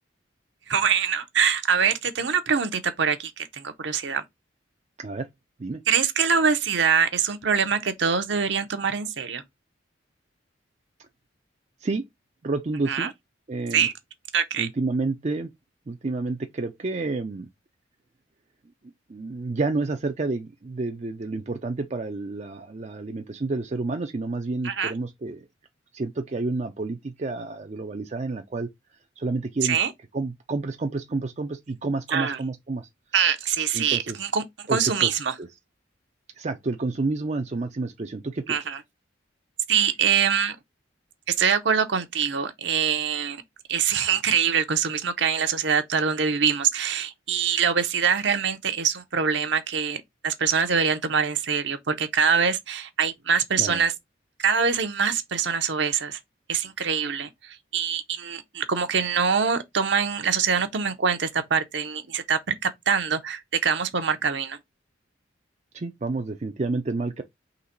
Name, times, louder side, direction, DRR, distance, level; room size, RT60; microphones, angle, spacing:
voice 1, 0.7-4.2 5.9-9.4 12.9-13.1 13.7-13.9 14.3-14.7 24.6-24.9 29.6-29.9 32.1-32.4 33.1-35.3 38.5-38.8 39.7-40.6 41.4-43.4 43.7-53.9 54.4-56.2 56.5-64.6, right 6 dB, 65° right, 0.8 m, -24 dB
voice 2, 12.4-13.1 13.5-13.9 14.6-15.5 15.9-17.5 19.1-25.5 25.9-28.7 29.2-29.8 30.1-32.9 33.7-34.2 34.7-35.1 35.4-35.5 36.4-38.6 53.6-53.8 65.7-67.2, right 3 dB, 35° right, 0.5 m, -29 dB
3.9 x 3.1 x 4.3 m
head